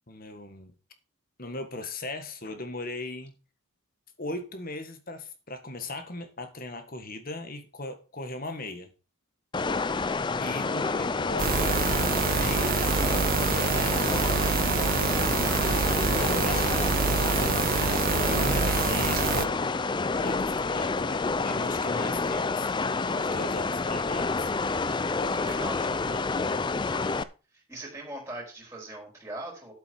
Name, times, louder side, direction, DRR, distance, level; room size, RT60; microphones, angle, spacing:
voice 1, 0.1-0.7 1.4-3.3 4.2-8.9 10.4-11.9 12.1-14.2 16.2-16.7 17.1-22.8 23.1-24.7 25.2-25.5 25.8-26.6, left 2 dB, 40° left, 1.7 m, -38 dB
sound 1, 9.5-27.2, left 4 dB, 20° left, 0.4 m, -28 dB
sound 2, 11.4-19.5, right 6 dB, 40° right, 0.4 m, -26 dB
voice 2, 15.4-15.8 25.3-25.9 27.5-29.7, right 1 dB, 10° right, 4.3 m, -40 dB
11.0 x 8.0 x 4.5 m
head